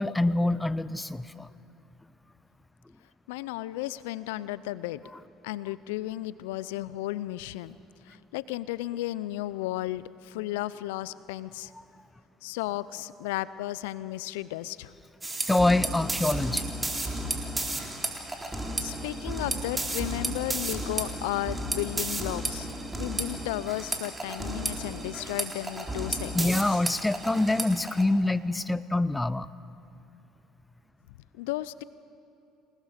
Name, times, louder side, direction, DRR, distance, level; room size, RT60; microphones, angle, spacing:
voice 1, 0.0-1.5 15.5-16.7 26.3-29.5, left 2 dB, 10° left, 16 dB, 0.6 m, -25 dB
voice 2, 3.3-5.0 5.4-7.8 8.1-11.7 12.4-14.9 18.8-22.7 23.0-26.6 31.3-31.8, left 16 dB, 85° left, 17 dB, 0.4 m, -34 dB
sound 1, 15.2-28.0, right 1 dB, 15° right, 3.6 m, -33 dB
28.0 x 19.0 x 6.6 m, 2.8 s
supercardioid pair, 75°, 0 cm